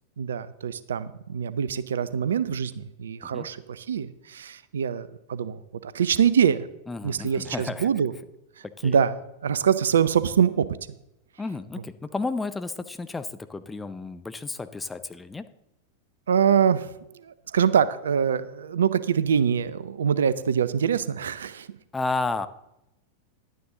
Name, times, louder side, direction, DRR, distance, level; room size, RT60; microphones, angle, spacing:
voice 1, 0.2-6.7 7.0-8.1 8.8-9.1 9.4-10.7 16.3-16.9 17.2-21.7, right 7 dB, 65° right, 16 dB, 0.5 m, -24 dB
voice 2, 6.9-7.9 8.6-9.0 11.4-15.5 21.9-22.5, left 3 dB, 10° left, 11 dB, 0.6 m, -32 dB
11.0 x 9.4 x 3.7 m, 0.89 s
figure-of-eight pair, 90°, 0 cm